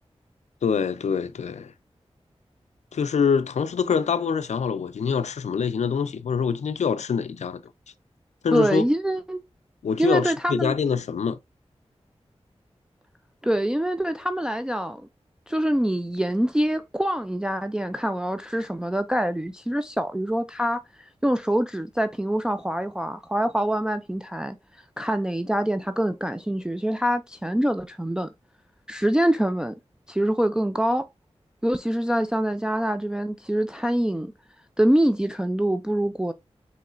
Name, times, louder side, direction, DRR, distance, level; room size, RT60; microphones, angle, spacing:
voice 1, 0.6-1.7 2.9-7.6 8.4-8.9 9.8-11.4, left 6 dB, 90° left, 0.4 m, -25 dB
voice 2, 8.5-9.4 10.0-10.7 13.4-15.0 15.5-24.6 25.0-28.3 28.9-29.8 30.1-31.1 31.6-34.3 34.8-36.3, right 1 dB, 5° right, 0.3 m, -25 dB
5.4 x 3.1 x 2.5 m
cardioid pair, 50°, 11 cm